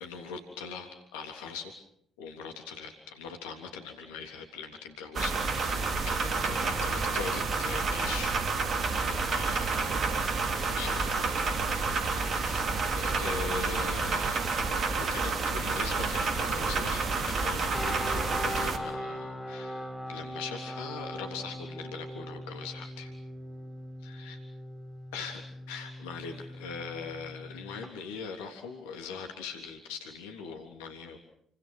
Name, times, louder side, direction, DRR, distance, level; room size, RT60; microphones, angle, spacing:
voice 1, 0.0-1.7 2.2-8.4 8.9-10.2 10.7-11.3 11.6-23.1 24.0-24.4 25.1-31.2, left 5 dB, 70° left, 4 dB, 3.4 m, -41 dB
sound 1, 5.1-18.8, right 4 dB, 45° right, 3.5 m, -29 dB
sound 2, 17.7-27.9, left 1 dB, 5° left, 5.9 m, -40 dB
30.0 x 24.5 x 6.3 m, 0.66 s
figure-of-eight pair, 45°, 0 cm